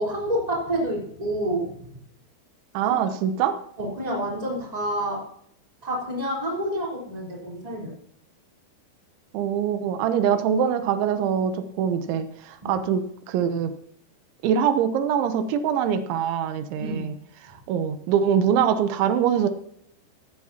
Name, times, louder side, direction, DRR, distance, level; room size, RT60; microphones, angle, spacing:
voice 1, 0.0-1.8 2.8-2.9 3.8-5.3 5.8-7.9 12.6-12.8 16.8-17.0, right 1 dB, 10° right, -2 dB, 3.3 m, -28 dB
voice 2, 2.7-3.6 9.3-13.7 14.4-17.1 17.4-19.5, right 8 dB, 85° right, 9 dB, 3.2 m, -23 dB
16.0 x 14.0 x 2.9 m, 0.68 s
omnidirectional pair, 5.3 m